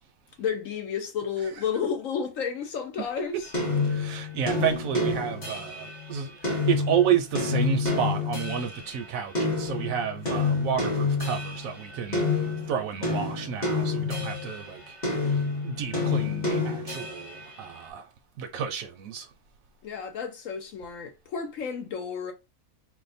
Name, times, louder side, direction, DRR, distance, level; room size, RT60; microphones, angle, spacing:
voice 1, 0.4-3.5 19.8-22.3, left 7 dB, 65° left, 1.0 m, -31 dB
sound 1, 3.5-8.8 9.3-14.6 15.0-17.4, left 3 dB, 35° left, 1.0 m, -28 dB
voice 2, 3.9-12.2 12.7-14.8 15.6-18.0 18.4-19.3, right 8 dB, 70° right, 1.0 m, -30 dB
2.6 x 2.2 x 4.1 m
omnidirectional pair, 1.6 m